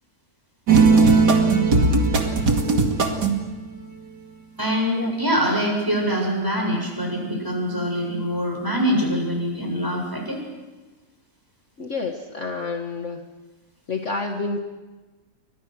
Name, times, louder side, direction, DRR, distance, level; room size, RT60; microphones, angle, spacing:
sound 1, 0.7-3.5, right 4 dB, 75° right, 3.0 m, -17 dB
voice 1, 4.6-10.4, equal, 10° right, 0 dB, 7.2 m, -24 dB
voice 2, 11.8-13.2 13.9-14.6, left 3 dB, 45° left, 3 dB, 2.0 m, -29 dB
30.0 x 24.5 x 6.3 m, 1.2 s
omnidirectional pair, 1.8 m